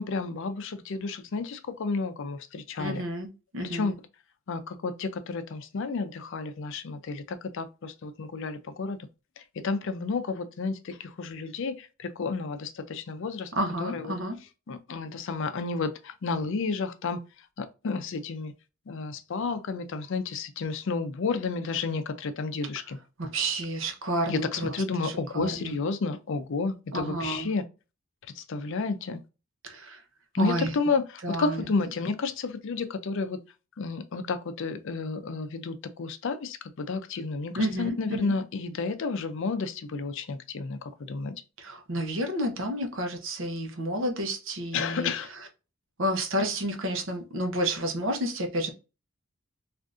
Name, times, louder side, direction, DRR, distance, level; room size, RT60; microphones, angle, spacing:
voice 1, 0.0-3.0 3.6-3.9 4.5-9.0 9.4-13.5 13.8-14.2 14.7-17.2 17.6-18.5 18.9-23.0 24.3-27.6 28.4-29.2 30.3-33.4 33.8-41.3 44.7-45.3, left 4 dB, 60° left, 0.5 m, -31 dB
voice 2, 2.8-3.3 3.5-3.9 13.6-14.4 23.2-24.8 25.0-25.7 26.9-27.5 29.6-30.0 30.4-30.7 31.2-31.6 37.6-38.3 41.6-45.4 46.0-48.7, right 1 dB, 60° right, 0.8 m, -30 dB
3.5 x 2.5 x 2.5 m
head